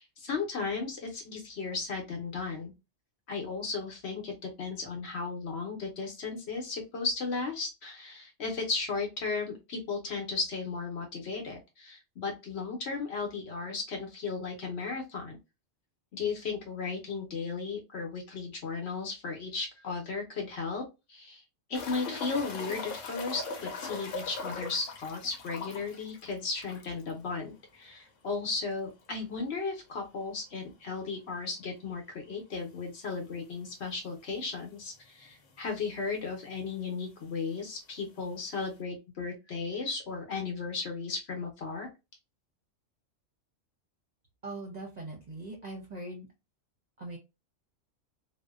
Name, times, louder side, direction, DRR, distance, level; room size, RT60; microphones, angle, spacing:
voice 1, 0.0-2.7 3.3-15.4 16.1-20.8 21.1-21.4 21.7-41.9, left 4 dB, 60° left, 2 dB, 1.0 m, -35 dB
sound 1, 21.7-27.1 27.4-27.5 27.9-28.0 30.7-30.8 32.5-32.6 33.4-33.5 33.7-33.8 34.7-34.8 35.0-35.6 36.6-36.7, left 4 dB, 80° left, 1.0 m, -40 dB
voice 2, 44.4-46.3 47.0-47.2, right 2 dB, 40° right, 0 dB, 0.7 m, -41 dB
2.6 x 2.1 x 2.2 m, 0.25 s
omnidirectional pair, 1.3 m